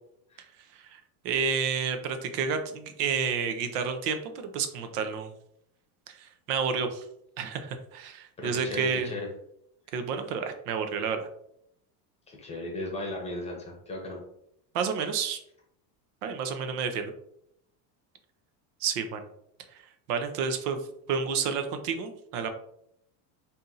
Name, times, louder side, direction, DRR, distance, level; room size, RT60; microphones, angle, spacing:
voice 1, 1.2-5.3 6.1-7.0 7.4-9.1 9.9-11.2 14.7-15.4 16.2-17.1 18.8-19.2 20.1-20.8 21.1-22.5, right 6 dB, 90° right, 7 dB, 0.8 m, -30 dB
voice 2, 8.4-9.3 12.3-14.2, left 1 dB, 15° left, -1 dB, 0.8 m, -36 dB
4.2 x 2.7 x 3.9 m, 0.73 s
cardioid pair, 175°, 44 cm